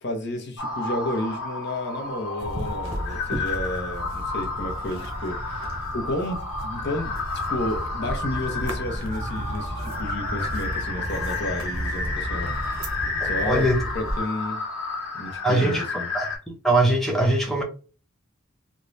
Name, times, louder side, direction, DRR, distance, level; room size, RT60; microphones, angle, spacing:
voice 1, 0.0-5.7 5.9-7.1 7.5-12.5 13.2-13.7 13.9-14.6 15.1-16.1, left 1 dB, 50° left, 0.6 m, -31 dB
sound 1, 0.6-16.4, left 3 dB, 80° left, 1.0 m, -31 dB
sound 2, 2.4-14.2, right 1 dB, 80° right, 0.8 m, -33 dB
voice 2, 13.2-13.8 15.4-15.8 16.1-16.3 16.6-17.6, right 1 dB, ahead, 0.5 m, -21 dB
3.0 x 2.1 x 2.5 m
head